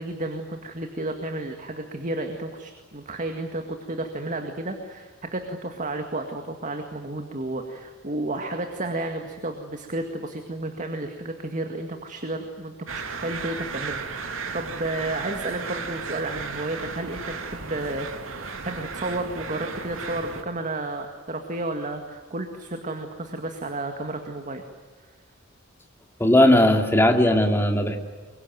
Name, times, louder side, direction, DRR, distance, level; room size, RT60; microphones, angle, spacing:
voice 1, 0.0-18.1 18.6-24.6, right 2 dB, 40° right, 5 dB, 2.0 m, -32 dB
sound 1, 12.9-20.4, right 4 dB, 80° right, 2.6 m, -35 dB
voice 2, 26.2-28.0, left 1 dB, 10° left, 4 dB, 2.5 m, -18 dB
25.0 x 23.5 x 9.3 m, 1.5 s
head